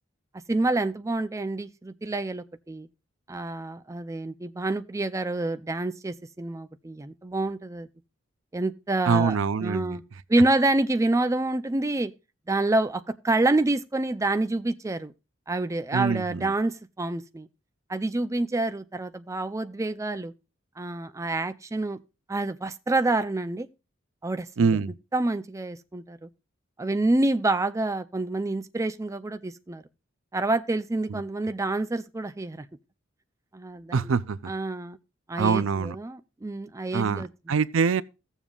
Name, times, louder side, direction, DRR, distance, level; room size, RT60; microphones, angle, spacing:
voice 1, 0.5-2.9 3.3-7.9 8.5-10.0 10.3-12.1 12.5-15.1 15.5-17.5 17.9-20.3 20.8-22.0 22.3-23.7 24.2-24.7 25.1-26.3 26.8-29.8 30.3-32.7 33.5-34.1 34.5-35.0 35.3-37.3, right 2 dB, 15° right, 0.4 m, -27 dB
voice 2, 9.0-10.0 15.9-16.5 24.6-24.9 31.1-31.2 33.9-34.5 35.4-36.0 36.9-38.0, right 5 dB, 80° right, 0.5 m, -25 dB
16.5 x 7.1 x 2.4 m
head